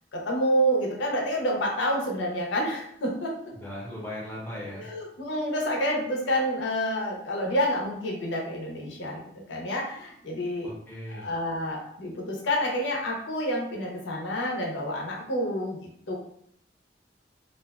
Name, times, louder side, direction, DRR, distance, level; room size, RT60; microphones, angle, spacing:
voice 1, 0.1-3.3 4.7-9.2 9.5-10.7 11.1-15.8 16.1-16.2, equal, 85° left, -1 dB, 0.6 m, -28 dB
voice 2, 3.5-4.9 10.6-11.3, left 1 dB, 10° left, -5 dB, 0.7 m, -38 dB
2.4 x 2.2 x 2.3 m, 0.68 s
head